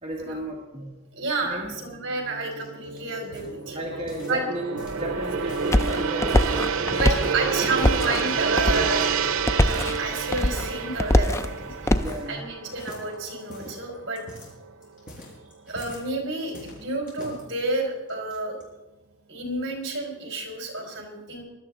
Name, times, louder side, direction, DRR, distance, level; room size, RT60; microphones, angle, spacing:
voice 1, 0.0-1.0 1.4-1.7 3.7-6.6 7.1-8.1 12.0-12.5, equal, 30° right, -4 dB, 1.6 m, -34 dB
voice 2, 1.1-4.0 4.3-4.4 7.0-9.1 9.6-12.0 12.3-14.2 15.7-18.6 19.3-21.4, right 2 dB, 60° right, 1 dB, 4.2 m, -30 dB
Gong, 1.8-14.2 14.6-14.8, right 6 dB, 90° right, 0.7 m, -29 dB
sound 1, 2.5-4.5 4.8-5.8 6.1-7.2 7.6-8.6 9.0-9.3 9.7-10.1 10.5-10.9 11.3-11.5 11.8-12.5 12.7-16.1 16.5-17.4 18.1-18.6, left 1 dB, 40° left, 5.0 m, -44 dB
sound 2, 4.9-12.2, left 1 dB, 15° left, 0.4 m, -24 dB
20.0 x 12.0 x 3.7 m, 1.1 s
head